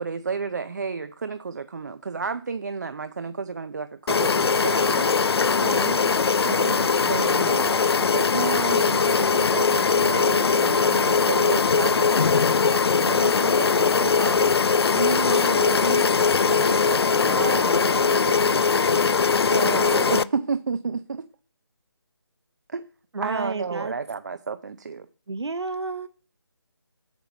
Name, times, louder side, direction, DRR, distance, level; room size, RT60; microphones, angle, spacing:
voice 1, 0.0-5.1 6.4-21.3 22.7-22.8 23.2-25.1, right 5 dB, 40° right, 0.5 m, -32 dB
sound 1, 4.1-20.2, left 5 dB, 70° left, 0.4 m, -21 dB
voice 2, 5.6-6.1 15.8-16.1 23.1-24.0 25.3-26.1, right 3 dB, 80° right, 0.7 m, -31 dB
8.1 x 6.8 x 4.3 m
figure-of-eight pair, 155°, 14 cm